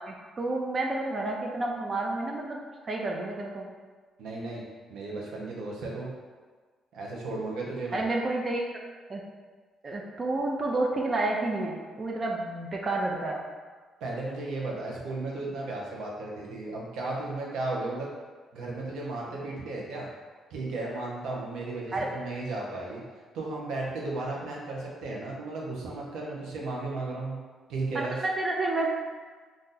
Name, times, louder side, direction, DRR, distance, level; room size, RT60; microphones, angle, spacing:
voice 1, 0.0-2.6 2.8-3.7 7.9-8.6 9.1-9.2 9.8-13.4 21.9-22.1 27.9-28.9, right 2 dB, 40° right, 0 dB, 0.4 m, -30 dB
voice 2, 4.2-4.6 4.9-6.1 6.9-8.0 14.0-18.1 18.5-20.1 20.5-23.0 23.3-27.4 27.7-28.2, right 2 dB, 85° right, -3 dB, 0.7 m, -34 dB
2.7 x 2.5 x 3.8 m, 1.5 s
cardioid pair, 90°, 0 cm